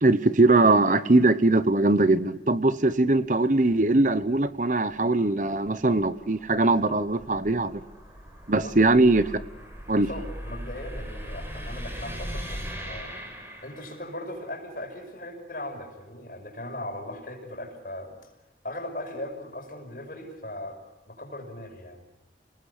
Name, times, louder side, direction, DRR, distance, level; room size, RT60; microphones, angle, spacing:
voice 1, 0.0-7.8 8.5-9.2 9.9-10.1, right 2 dB, 45° right, 13 dB, 1.0 m, -21 dB
sound 1, 2.9-14.2, equal, 15° right, 5.0 m, -40 dB
voice 2, 9.9-13.1 13.6-18.3 18.6-20.8 21.1-22.0, left 1 dB, 50° left, 4 dB, 5.9 m, -38 dB
28.5 x 19.5 x 8.3 m, 1.1 s
head